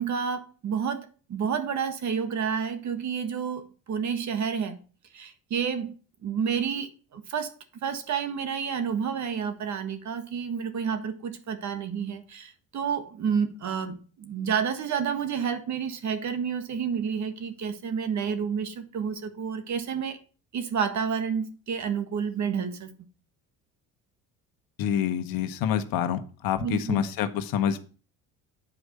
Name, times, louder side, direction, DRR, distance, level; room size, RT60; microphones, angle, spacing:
voice 1, 0.0-4.8 5.1-5.9 6.2-7.5 7.8-20.2 20.5-22.9 26.6-27.0, right 7 dB, 50° right, 1.6 m, -30 dB
voice 2, 24.8-27.8, left 9 dB, 70° left, 1.2 m, -27 dB
8.9 x 4.8 x 6.6 m
supercardioid pair, 85°, 36 cm